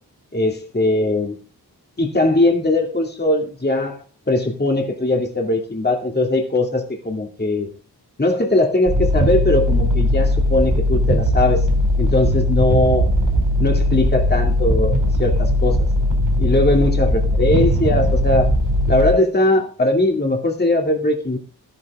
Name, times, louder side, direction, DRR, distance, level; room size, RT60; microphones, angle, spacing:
voice 1, 0.3-1.4 2.0-7.7 8.2-11.7 12.0-13.2 13.6-15.8 16.4-18.5 18.9-21.4, left 2 dB, 25° left, 2.3 m, -20 dB
sound 1, 8.9-19.1, left 1 dB, 55° right, 4.6 m, -18 dB
13.0 x 12.5 x 3.6 m
wide cardioid pair, 105°, 40 cm